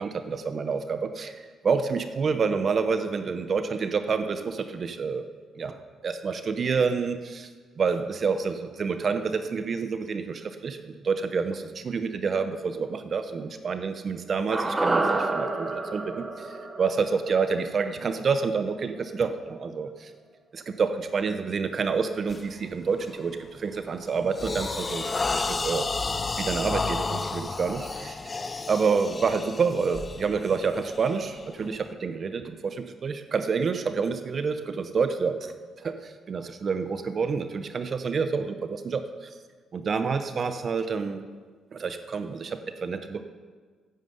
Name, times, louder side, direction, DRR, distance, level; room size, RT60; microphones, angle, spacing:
voice 1, 0.0-1.3 1.6-5.2 5.6-5.8 6.0-7.5 7.8-16.2 16.8-20.1 20.5-25.9 26.4-28.2 28.7-35.5 35.8-39.0 39.7-41.2 41.7-43.2, right 5 dB, 45° right, 9 dB, 0.8 m, -28 dB
sound 1, 14.5-18.8 19.1-19.2, right 2 dB, 20° right, 1.3 m, -29 dB
sound 2, 22.3-22.5 23.0-23.3 23.8-31.9, left 3 dB, 30° left, 0.7 m, -32 dB
9.4 x 9.1 x 8.0 m, 1.5 s
cardioid pair, 90°, 0 cm